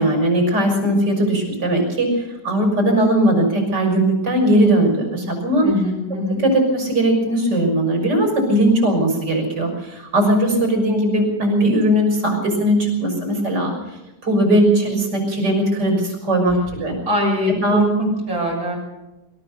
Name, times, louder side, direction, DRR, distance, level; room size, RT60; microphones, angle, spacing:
voice 1, 0.0-5.7 6.3-13.7 14.2-17.0 17.6-17.9, right 1 dB, 85° right, 3 dB, 6.9 m, -19 dB
voice 2, 5.6-6.4 17.1-18.8, left 1 dB, 60° right, -2 dB, 7.2 m, -22 dB
27.5 x 14.0 x 6.8 m, 1.0 s
omnidirectional pair, 1.9 m